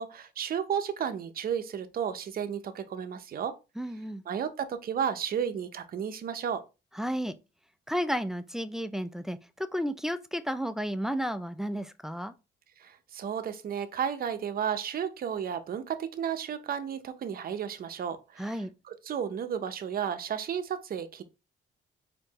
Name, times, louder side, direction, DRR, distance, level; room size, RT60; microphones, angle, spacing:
voice 1, 0.0-3.6 4.3-6.6 12.8-21.2, right 8 dB, 50° right, 0.6 m, -33 dB
voice 2, 3.8-4.2 6.9-7.4 7.9-12.3 18.4-18.7, equal, ahead, 0.3 m, -32 dB
4.5 x 2.6 x 2.9 m
cardioid pair, 90°, 20 cm